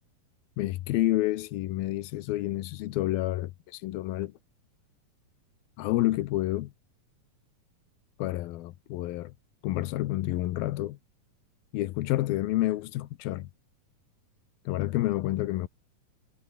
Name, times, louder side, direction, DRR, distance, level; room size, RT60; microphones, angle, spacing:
voice 1, 0.6-4.3 5.8-6.7 8.2-9.3 9.6-11.0 11.7-13.5 14.7-15.7, left 16 dB, 85° left, 2.7 m, -29 dB
omnidirectional pair, 4.3 m